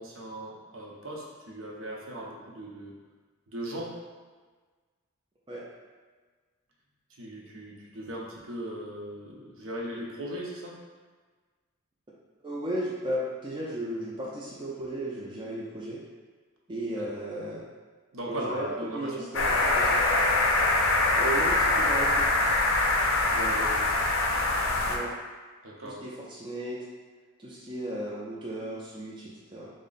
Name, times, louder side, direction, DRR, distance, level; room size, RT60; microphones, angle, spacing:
voice 1, 0.0-2.9 3.5-3.9 7.2-10.7 17.0-17.1 18.1-19.3 23.3-23.8 25.6-26.0, right 1 dB, 60° right, -2 dB, 0.6 m, -38 dB
voice 2, 12.4-16.0 16.7-17.7 18.2-20.0 21.1-22.3 24.9-25.1 25.8-26.8 27.4-29.7, right 1 dB, 20° right, -6 dB, 0.4 m, -35 dB
sound 1, 19.3-25.0, left 2 dB, 60° left, 0.5 m, -24 dB
3.5 x 2.1 x 3.9 m, 1.4 s
head